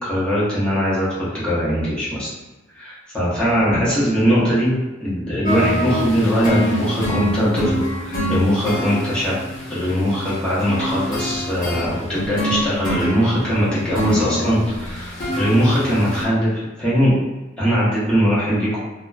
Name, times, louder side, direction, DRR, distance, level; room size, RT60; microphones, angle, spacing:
voice 1, 0.0-2.3 2.7-4.7 5.0-9.4 9.7-17.1 17.6-18.8, equal, 5° left, -10 dB, 0.9 m, -20 dB
sound 1, 5.4-16.2, equal, 45° left, 0.9 m, -25 dB
2.9 x 2.1 x 2.3 m, 1.2 s
head